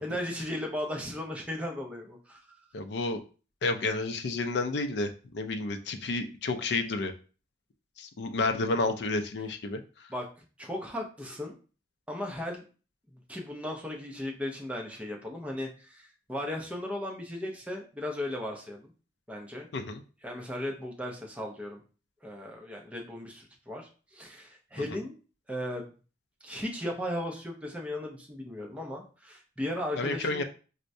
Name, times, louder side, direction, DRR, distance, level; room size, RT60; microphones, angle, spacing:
voice 1, 0.0-2.6 10.1-10.3 10.6-11.5 12.1-12.6 13.3-18.9 19.3-19.7 20.2-21.8 22.2-25.1 25.5-25.9 26.4-30.4, left 1 dB, 5° right, 0 dB, 0.5 m, -36 dB
voice 2, 2.7-3.2 3.6-7.1 8.0-9.8 19.7-20.0 30.0-30.4, left 3 dB, 60° left, 6 dB, 0.4 m, -30 dB
4.4 x 2.1 x 2.6 m, 0.37 s
head